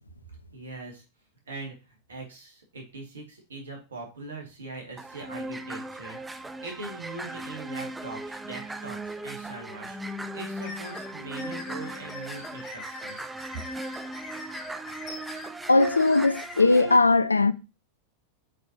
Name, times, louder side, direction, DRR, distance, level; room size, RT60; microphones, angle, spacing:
voice 1, 0.5-1.0 1.5-10.0 10.3-13.6, right 3 dB, 70° right, 2.3 m, -41 dB
sound 1, 5.0-17.0, right 1 dB, 10° right, 0.6 m, -38 dB
sound 2, 10.6-16.5, left 3 dB, 35° left, 2.3 m, -43 dB
voice 2, 15.7-17.5, left 3 dB, 80° left, 0.4 m, -19 dB
7.8 x 4.5 x 3.0 m
figure-of-eight pair, 90°, 0 cm